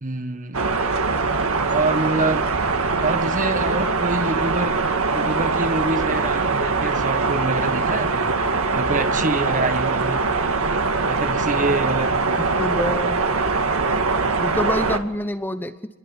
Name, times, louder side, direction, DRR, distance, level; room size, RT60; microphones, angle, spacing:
voice 1, 0.0-0.6 1.7-2.5 3.0-4.8 5.1-8.3 8.7-10.2 11.1-12.2, right 2 dB, 40° right, 1.5 m, -26 dB
sound 1, 0.5-15.0, right 4 dB, 85° right, 1.8 m, -22 dB
voice 2, 12.6-13.2 14.4-16.0, left 1 dB, 10° left, 0.9 m, -26 dB
27.5 x 22.0 x 9.9 m
head